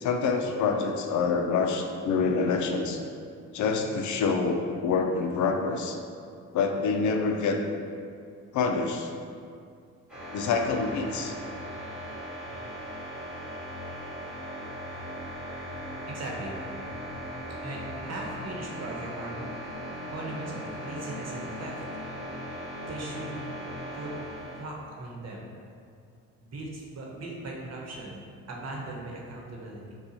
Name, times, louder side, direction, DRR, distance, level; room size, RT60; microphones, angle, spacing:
voice 1, 0.0-3.0 3.5-6.0 6.5-7.6 8.5-9.1 10.3-11.3, left 4 dB, 75° left, 4 dB, 0.5 m, -26 dB
sound 1, 10.1-24.6, equal, 5° right, 1.5 m, -38 dB
voice 2, 16.1-16.6 17.6-19.5 20.1-21.8 22.9-23.4 23.9-24.1 24.6-25.5 26.4-28.2 28.5-29.9, right 2 dB, 55° right, -1 dB, 1.0 m, -39 dB
6.6 x 2.3 x 2.9 m, 2.3 s
cardioid pair, 90°, 30 cm